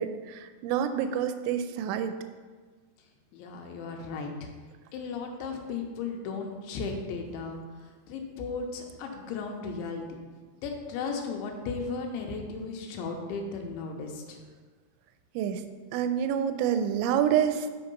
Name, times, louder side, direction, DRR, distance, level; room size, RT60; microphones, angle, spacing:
voice 1, 0.0-2.2 15.4-15.6 15.9-17.7, right 9 dB, 85° right, 9 dB, 2.9 m, -27 dB
voice 2, 3.3-4.5 4.9-10.0 10.6-14.4, left 4 dB, 85° left, 2 dB, 3.2 m, -35 dB
7.9 x 5.4 x 5.3 m, 1.4 s
omnidirectional pair, 5.3 m